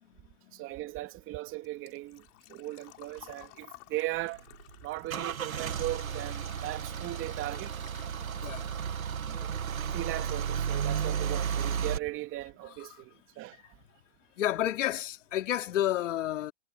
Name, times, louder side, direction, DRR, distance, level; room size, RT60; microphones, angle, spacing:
voice 1, 0.5-4.4 4.8-7.7 9.9-13.6, right 17 dB, 30° right, 2.8 m, -38 dB
Engine / Trickle dribble / Fill (with liquid), 0.7-8.6 8.9-9.9 10.2-10.3 12.2-12.3 12.5-12.8 13.2-13.3 13.6-13.7, left 22 dB, 35° left, 7.3 m, -55 dB
Car / Engine starting / Idling, 4.2-12.0, right 8 dB, 90° right, 1.7 m, -33 dB
voice 2, 12.6-13.0 14.4-16.5, left 12 dB, 65° left, 2.9 m, -31 dB
hypercardioid pair, 130°, 40 cm